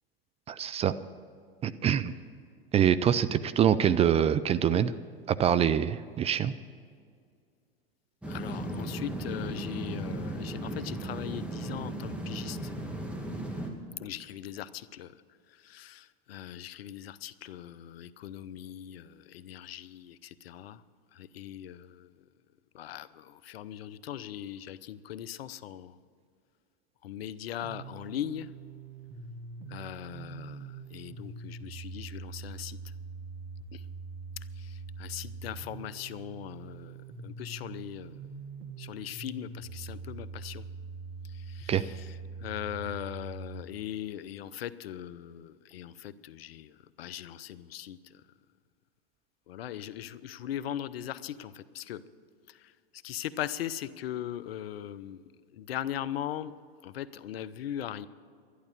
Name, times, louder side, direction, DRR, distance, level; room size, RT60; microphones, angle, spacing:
voice 1, 0.5-0.9 1.6-2.1 2.7-4.9 5.3-6.5 41.7-41.8, right 9 dB, 20° right, 15 dB, 0.4 m, -25 dB
sound 1, 8.2-13.7, right 1 dB, 5° right, 2.1 m, -36 dB
voice 2, 8.3-12.7 14.0-15.1 15.6-20.8 21.1-22.1 22.7-26.0 27.0-28.5 29.7-32.8 33.7-33.8 34.6-37.0 37.2-38.2 38.8-40.6 41.3-42.1 42.4-48.0 49.5-52.0 52.5-52.7 53.0-55.2 55.5-56.5 56.8-58.1, left 11 dB, 75° left, 16 dB, 0.7 m, -39 dB
sound 2, 27.6-43.6, right 4 dB, 70° right, 1.7 m, -43 dB
12.0 x 11.5 x 7.3 m, 2.2 s
hypercardioid pair, 100°, 30 cm